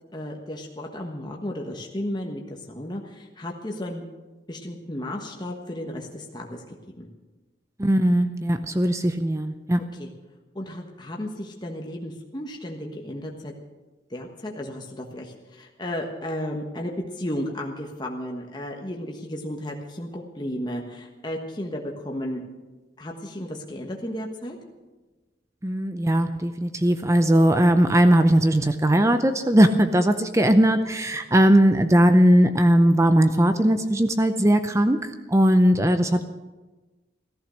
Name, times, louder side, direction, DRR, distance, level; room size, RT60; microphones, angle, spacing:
voice 1, 0.1-4.0 4.5-7.1 9.9-10.1 10.5-13.5 14.1-22.4 23.0-24.6 31.3-31.4, left 1 dB, 25° left, 0 dB, 1.3 m, -34 dB
voice 2, 7.8-9.8 25.6-36.2, right 1 dB, 15° right, 9 dB, 0.6 m, -19 dB
15.0 x 14.0 x 6.4 m, 1.2 s
head